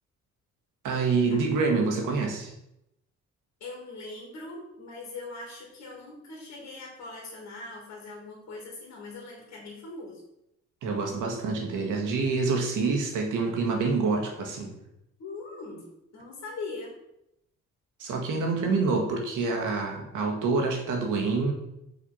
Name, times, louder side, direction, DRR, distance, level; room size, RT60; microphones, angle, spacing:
voice 1, 0.8-2.5 10.8-14.7 18.0-21.5, right 4 dB, 85° right, 2 dB, 1.8 m, -27 dB
voice 2, 3.6-10.2 15.2-15.9 16.1-16.9, left 3 dB, 65° left, -2 dB, 2.1 m, -41 dB
6.0 x 4.4 x 5.5 m, 0.83 s
cardioid pair, 90°, 30 cm